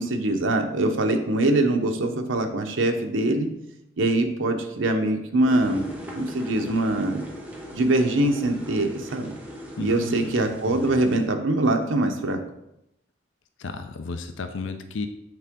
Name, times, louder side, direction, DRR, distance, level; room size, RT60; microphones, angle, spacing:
voice 1, 0.0-3.5 4.0-5.8 6.2-7.3 7.7-9.3 9.8-12.4, right 2 dB, 80° right, 4 dB, 0.8 m, -23 dB
sound 1, 5.5-11.2, equal, 10° right, 0.8 m, -39 dB
voice 2, 9.8-11.0 13.6-15.1, left 4 dB, 75° left, 8 dB, 0.5 m, -34 dB
7.8 x 3.8 x 3.6 m, 0.82 s
head